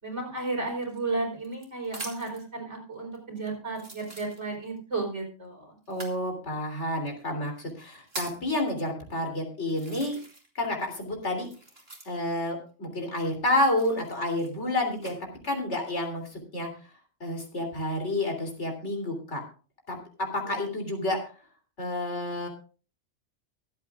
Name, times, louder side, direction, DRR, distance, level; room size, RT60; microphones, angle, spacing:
voice 1, 0.0-5.8 20.4-20.6, right 3 dB, 75° right, 0 dB, 4.8 m, -33 dB
sound 1, 0.8-2.5 3.1-3.2 3.7-4.8 5.9-6.2 7.1-7.2 7.7-8.5 9.2-9.3 9.7-10.6 10.8-12.4 13.6-15.2 15.8-16.3, right 2 dB, 55° right, 2.8 m, -43 dB
voice 2, 5.9-10.2 10.6-11.5 12.1-15.1 15.4-16.7 17.2-19.4 19.9-20.0 20.3-21.2 21.8-22.5, left 1 dB, 75° left, 3 dB, 3.6 m, -29 dB
24.0 x 8.2 x 2.5 m, 0.36 s
omnidirectional pair, 1.2 m